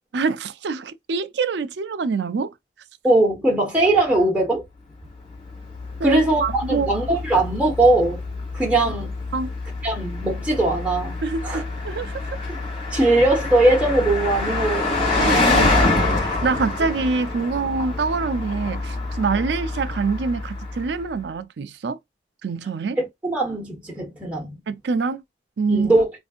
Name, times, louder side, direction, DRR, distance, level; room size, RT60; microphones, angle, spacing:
voice 1, 0.1-2.5 6.0-6.9 9.3-9.5 11.2-12.3 15.2-22.0 22.4-23.0 24.7-25.2 25.6-25.9, right 4 dB, 70° right, 0.4 m, -25 dB
voice 2, 3.0-4.6 6.0-8.2 8.5-9.1 9.8-11.2 11.4-11.6 12.9-15.0 23.0-24.5 25.7-26.1, right 2 dB, 10° right, 1.3 m, -20 dB
Car passing by, 5.3-21.0, left 2 dB, 35° left, 2.6 m, -26 dB
4.3 x 2.6 x 2.4 m
head